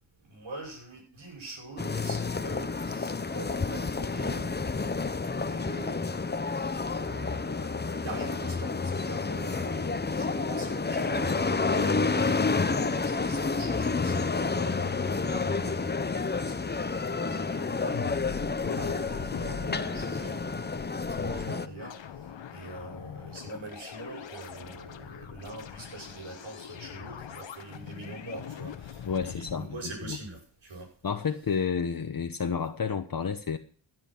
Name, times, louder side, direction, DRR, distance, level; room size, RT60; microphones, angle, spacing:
voice 1, 0.2-5.0 5.4-14.2 14.5-20.4 21.1-22.0 22.5-30.9, right 2 dB, 80° right, 0 dB, 6.3 m, -43 dB
sound 1, 1.8-21.7, left 4 dB, 20° left, 0.8 m, -30 dB
sound 2, 17.9-29.5, left 8 dB, 70° left, 1.2 m, -42 dB
voice 2, 29.1-30.2 31.0-33.6, left 6 dB, 50° left, 7 dB, 1.1 m, -30 dB
15.5 x 7.6 x 6.0 m, 0.43 s
cardioid pair, 60°, 46 cm